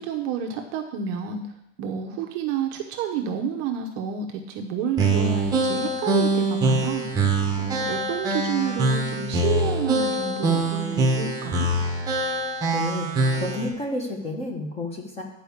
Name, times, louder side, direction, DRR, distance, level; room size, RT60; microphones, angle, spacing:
voice 1, 0.0-1.4 1.8-7.1 7.6-11.7, right 7 dB, 35° right, 3 dB, 0.8 m, -30 dB
sound 1, 5.0-13.7, right 2 dB, 10° right, 1.2 m, -24 dB
voice 2, 12.7-15.2, left 2 dB, 15° left, 2 dB, 1.3 m, -31 dB
10.0 x 4.8 x 7.2 m, 0.85 s
supercardioid pair, 160°, 38 cm